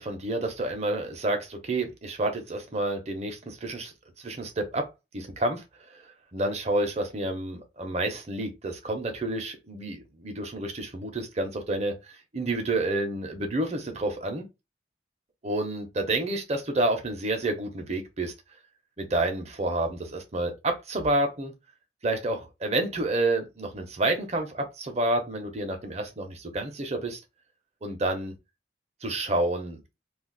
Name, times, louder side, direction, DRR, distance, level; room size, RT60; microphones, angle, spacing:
voice 1, 0.0-3.9 4.2-4.9 5.1-14.5 15.4-18.3 19.0-21.5 22.0-27.2 27.8-28.3 29.0-29.8, right 2 dB, 35° right, 0.7 m, -29 dB
2.4 x 2.4 x 3.7 m
head